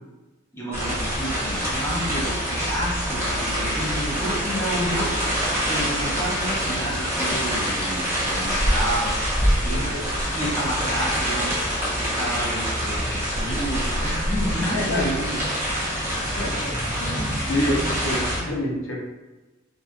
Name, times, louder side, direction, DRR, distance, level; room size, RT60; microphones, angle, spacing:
voice 1, 0.5-5.2 5.7-10.0 10.3-11.6 12.0-15.4 17.6-17.9, equal, 10° left, -6 dB, 0.7 m, -30 dB
sound 1, 0.7-18.4, equal, 15° right, 1.0 m, -25 dB
voice 2, 9.6-10.0 13.0-13.1 14.4-15.0 16.4-16.7 17.0-19.0, left 1 dB, 75° left, -3 dB, 0.7 m, -28 dB
3.0 x 2.5 x 2.2 m, 1.1 s
head